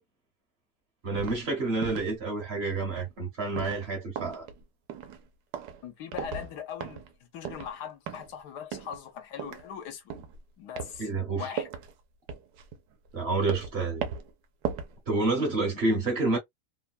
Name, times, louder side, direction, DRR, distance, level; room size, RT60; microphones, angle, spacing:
voice 1, 1.0-4.5 11.0-11.5 13.1-14.1 15.1-16.4, right 3 dB, 50° right, 0.9 m, -28 dB
sound 1, 1.1-1.4 1.8-2.1 2.8-3.1 3.5-4.6 4.9-5.3 5.5-5.8 6.1-6.6 6.8-7.1 7.5-7.7 8.1-8.4 8.7-9.1 9.4-9.7 10.1-10.4 10.8-11.0 11.6-11.9 12.3-13.2 13.5-13.8 14.0-14.3 14.6-15.0 15.3-15.4, right 7 dB, 85° right, 1.2 m, -37 dB
voice 2, 5.8-10.2 10.6-11.1 11.4-11.7, left 8 dB, 85° left, 1.4 m, -40 dB
3.3 x 2.2 x 2.3 m
omnidirectional pair, 1.7 m